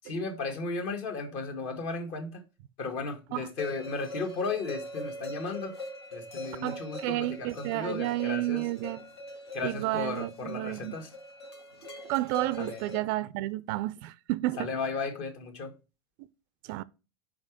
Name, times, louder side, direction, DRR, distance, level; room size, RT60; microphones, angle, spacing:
voice 1, 0.0-2.4 2.8-5.7 6.1-8.7 9.5-11.1 12.6-12.8 14.6-15.7, left 4 dB, 50° left, 1.5 m, -35 dB
sound 1, 3.6-13.0, left 1 dB, 80° left, 1.4 m, -42 dB
voice 2, 6.6-9.0 9.6-10.9 12.1-14.7 16.7-16.8, right 17 dB, 45° right, 0.4 m, -31 dB
5.1 x 5.0 x 5.0 m
figure-of-eight pair, 85°, 13 cm